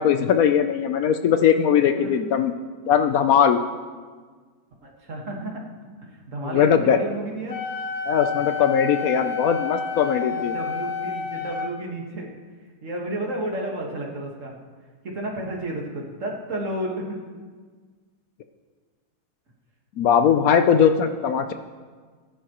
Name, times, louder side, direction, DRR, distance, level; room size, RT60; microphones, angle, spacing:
voice 1, 0.0-2.5 2.9-3.6 6.4-7.0 8.1-10.5 20.0-21.5, left 8 dB, 70° left, 8 dB, 1.0 m, -20 dB
voice 2, 4.8-5.6 6.0-7.6 10.3-12.3 12.8-14.5 15.0-17.2 20.0-20.3, right 1 dB, 50° right, 0 dB, 1.9 m, -32 dB
Wind instrument woodwind instrument, 7.5-11.7, left 6 dB, 85° left, 1.9 m, -30 dB
19.0 x 10.5 x 3.0 m, 1.5 s
omnidirectional pair, 1.7 m